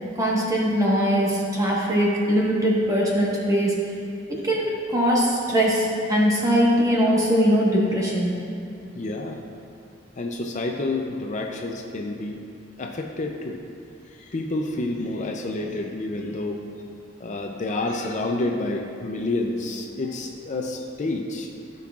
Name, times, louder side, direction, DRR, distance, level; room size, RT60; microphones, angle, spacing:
voice 1, 0.2-3.7 4.4-8.3, equal, 20° right, -4 dB, 1.3 m, -21 dB
voice 2, 9.0-9.4 10.2-12.4 12.8-13.6 14.0-16.6 17.2-21.5, left 2 dB, 40° left, 2 dB, 0.5 m, -29 dB
16.0 x 5.4 x 2.4 m, 2.6 s
head